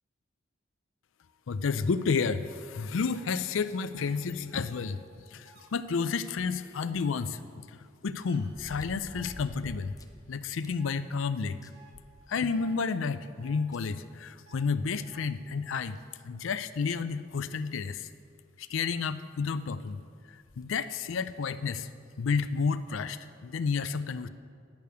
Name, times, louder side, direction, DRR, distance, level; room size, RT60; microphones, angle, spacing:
voice 1, 1.5-5.0 5.3-7.6 8.0-9.9 10.3-11.6 12.3-16.0 16.2-18.1 18.6-20.0 20.3-21.9 22.2-24.3, left 5 dB, 70° left, 13 dB, 0.5 m, -31 dB
sound 1, 3.1-3.3 3.9-4.1 4.7-4.9 5.4-5.7 7.0-7.2 8.2-8.4 9.1-9.3 10.8-11.0 11.7-11.9 12.5-12.8 13.4-13.6 14.5-14.6 15.1-15.2, right 5 dB, 60° right, 1.8 m, -56 dB
sound 2, 8.5-10.2 10.6-10.7 11.2-11.3 11.6-12.7 13.7-13.8 15.3-15.4 15.9-16.0 16.7-17.0 18.3-18.4 18.6-18.7 20.4-20.7 21.4-21.5, left 1 dB, 20° left, 0.6 m, -47 dB
10.5 x 6.6 x 6.9 m, 2.2 s
head